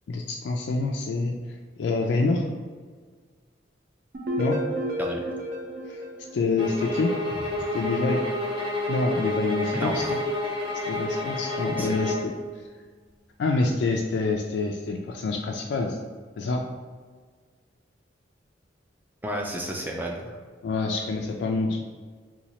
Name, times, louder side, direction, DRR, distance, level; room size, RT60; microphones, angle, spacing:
voice 1, 0.1-2.4 4.4-4.6 5.9-6.0 6.3-7.1 7.7-8.2 8.9-10.2 10.9-12.3 13.4-16.0 16.4-16.6 20.6-21.8, left 3 dB, 70° left, 1 dB, 0.3 m, -27 dB
sound 1, 4.1-7.1, equal, 55° right, 0.7 m, -32 dB
sound 2, 6.6-12.3, left 1 dB, 25° right, 0.9 m, -29 dB
voice 2, 9.7-10.2 11.8-11.9 19.2-20.4, equal, 10° right, 0 dB, 0.4 m, -31 dB
4.0 x 2.3 x 2.9 m, 1.5 s
head